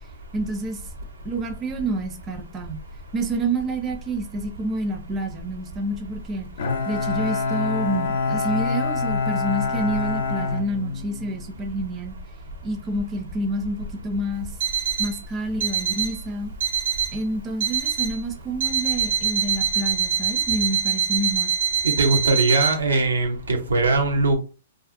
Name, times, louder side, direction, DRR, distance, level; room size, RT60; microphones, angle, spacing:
voice 1, 0.3-0.8 1.2-2.8 3.1-6.5 6.9-12.1 12.6-14.5 15.0-16.5 17.1-21.5, right 1 dB, 25° right, 0.5 m, -28 dB
Bowed string instrument, 6.6-11.4, left 4 dB, 70° left, 0.5 m, -26 dB
Alarm, 14.6-15.2 15.6-16.2 16.6-17.2 17.6-18.2 18.6-22.7, right 8 dB, 65° right, 0.9 m, -24 dB
voice 2, 21.8-24.4, right 3 dB, 90° right, 0.6 m, -20 dB
2.5 x 2.3 x 2.5 m
hypercardioid pair, 120°, 0 cm